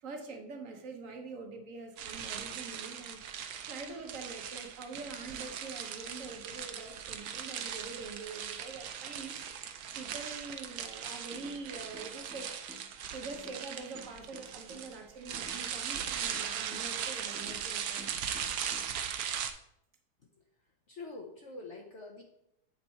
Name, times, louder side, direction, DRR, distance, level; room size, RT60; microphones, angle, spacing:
voice 1, 0.0-12.5 13.1-18.1, right 3 dB, 55° right, 4 dB, 1.3 m, -45 dB
sound 1, 2.0-19.5, right 8 dB, 70° right, 1.1 m, -39 dB
sound 2, 10.9-11.6 11.9-13.6 13.9-15.7 16.0-17.7 18.0-18.9, left 2 dB, 5° right, 1.0 m, -53 dB
voice 2, 20.9-22.2, left 3 dB, 50° left, 0 dB, 1.0 m, -45 dB
8.1 x 4.2 x 4.4 m, 0.79 s
omnidirectional pair, 1.8 m